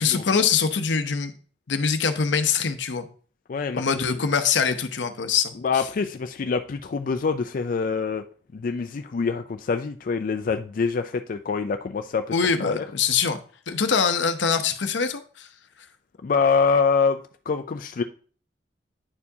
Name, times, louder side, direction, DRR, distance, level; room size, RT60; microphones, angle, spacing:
voice 1, 0.0-1.3 1.7-3.1 3.7-5.5 12.3-13.4 13.7-15.5, left 6 dB, 85° left, 9 dB, 0.7 m, -23 dB
voice 2, 3.5-3.9 5.6-8.2 8.5-12.3 12.6-12.8 16.2-17.2 17.5-18.0, left 5 dB, 50° left, 7 dB, 0.4 m, -25 dB
9.6 x 4.5 x 2.7 m, 0.41 s
head